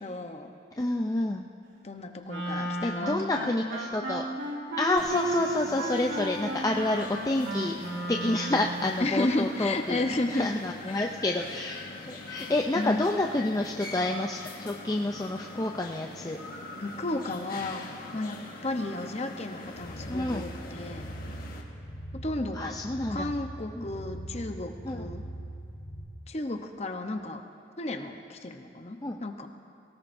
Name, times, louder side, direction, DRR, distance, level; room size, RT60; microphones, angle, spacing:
voice 1, 0.0-0.5 1.8-3.5 9.0-10.5 12.7-13.1 16.8-17.9 18.1-21.1 22.1-22.7 23.1-25.2 26.3-27.4 27.8-29.5, left 2 dB, 35° left, 5 dB, 0.8 m, -33 dB
voice 2, 0.8-1.5 2.5-4.3 4.8-7.8 8.1-16.4 20.1-20.5 22.5-23.3 23.8-23.9 24.8-25.1 29.0-29.2, left 2 dB, 20° left, 1 dB, 0.4 m, -29 dB
Wind instrument woodwind instrument, 2.3-8.9, right 1 dB, 90° right, 2.1 m, -34 dB
sound 1, 5.0-21.6, left 2 dB, 50° left, 1.5 m, -43 dB
sound 2, 19.6-26.1, right 1 dB, 65° left, 1.9 m, -41 dB
23.0 x 18.0 x 2.6 m, 2.6 s
head